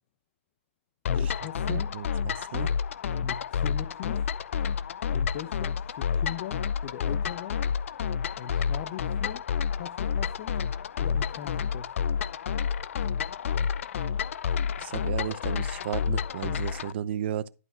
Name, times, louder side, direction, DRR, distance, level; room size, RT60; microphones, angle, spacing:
sound 1, 1.0-16.9, left 7 dB, 65° left, 0.6 m, -29 dB
voice 1, 1.1-2.0 3.2-4.3 5.1-7.6 8.4-9.4 9.8-10.5 11.0-12.2, left 11 dB, 40° left, 0.9 m, -40 dB
voice 2, 1.7-2.7 14.8-17.5, right 10 dB, 50° right, 0.8 m, -34 dB
11.5 x 5.3 x 4.6 m
hypercardioid pair, 150°, 7 cm